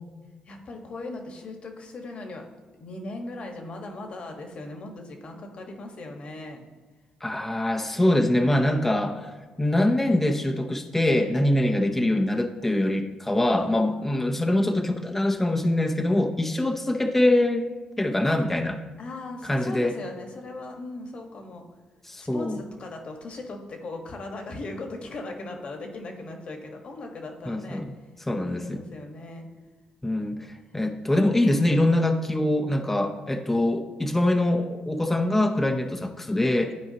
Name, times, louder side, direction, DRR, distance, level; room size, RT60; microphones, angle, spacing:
voice 1, 0.5-2.4 2.8-6.6 14.1-14.7 19.0-21.6 22.2-27.8 28.5-29.4, left 2 dB, 50° left, 3 dB, 1.3 m, -38 dB
voice 2, 7.2-9.3 9.6-17.7 18.0-18.8 19.4-20.0 22.0-22.6 27.5-27.9 28.3-28.8 30.0-36.7, left 1 dB, 10° left, 4 dB, 0.6 m, -24 dB
13.5 x 4.6 x 2.8 m, 1.3 s
cardioid pair, 100°, 3 cm